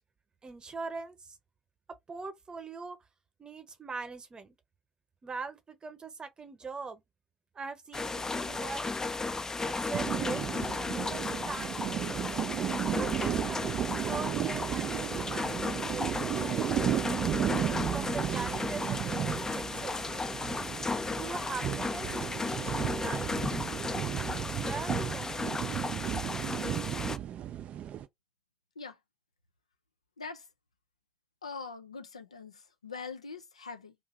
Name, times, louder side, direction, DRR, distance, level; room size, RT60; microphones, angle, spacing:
voice 1, 0.4-1.4 2.1-3.0 3.4-4.5 5.2-7.0 7.5-8.8 9.6-12.2 13.0-13.7 14.0-16.7 17.6-20.1 21.1-23.4 24.5-25.5, right 4 dB, 25° right, 0.9 m, -42 dB
sound 1, 7.9-27.2, left 3 dB, 20° left, 0.4 m, -35 dB
sound 2, 9.9-28.1, right 10 dB, 45° right, 0.4 m, -34 dB
voice 2, 30.2-30.5 31.4-33.9, left 5 dB, 80° left, 0.4 m, -43 dB
2.7 x 2.6 x 3.7 m
figure-of-eight pair, 55°, 3 cm